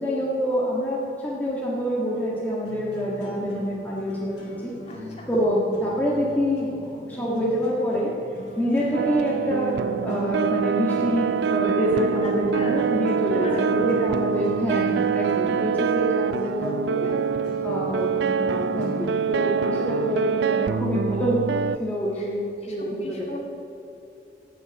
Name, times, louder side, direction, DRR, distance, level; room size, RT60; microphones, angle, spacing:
voice 1, 0.0-4.3 4.6-4.7 5.3-6.7 7.0-8.1 8.6-17.1 17.6-21.4 21.8-23.4, equal, 10° left, -6 dB, 1.6 m, -26 dB
sound 1, 1.3-20.1, equal, 75° left, 3.0 m, -41 dB
voice 2, 4.9-5.3 12.2-12.9 13.3-13.9 15.7-15.9 22.2-22.3 22.6-23.4, equal, 35° left, -2 dB, 2.5 m, -36 dB
sound 2, 8.9-21.8, right 6 dB, 70° right, 0.4 m, -25 dB
15.5 x 6.7 x 8.7 m, 2.7 s
head